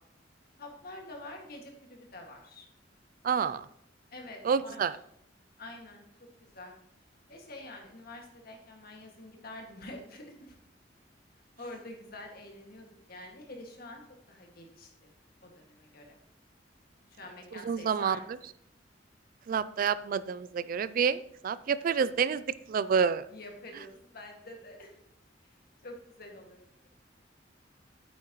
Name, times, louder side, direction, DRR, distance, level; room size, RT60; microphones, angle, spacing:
voice 1, 0.6-2.7 4.1-4.8 5.6-6.7 7.3-10.6 11.6-14.0 14.3-15.1 15.4-16.2 17.2-18.2 23.3-24.9 25.8-26.9, left 2 dB, 55° left, 1 dB, 2.0 m, -47 dB
voice 2, 3.2-3.7 4.4-4.9 17.5-18.2 19.5-23.3, right 6 dB, 50° right, 16 dB, 0.3 m, -28 dB
9.2 x 8.6 x 3.1 m, 0.71 s
head